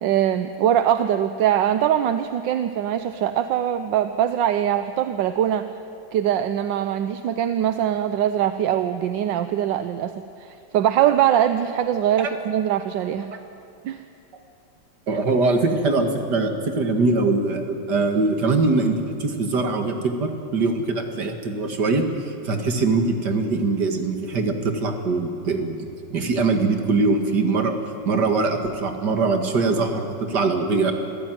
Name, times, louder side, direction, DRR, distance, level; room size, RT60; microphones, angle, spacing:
voice 1, 0.0-5.7 6.1-13.3 13.8-14.0, right 10 dB, 70° right, 10 dB, 1.3 m, -22 dB
voice 2, 15.1-25.8 26.1-27.8 28.1-30.9, right 3 dB, 55° right, 5 dB, 2.4 m, -22 dB
26.0 x 15.0 x 9.3 m, 2.7 s
omnidirectional pair, 2.2 m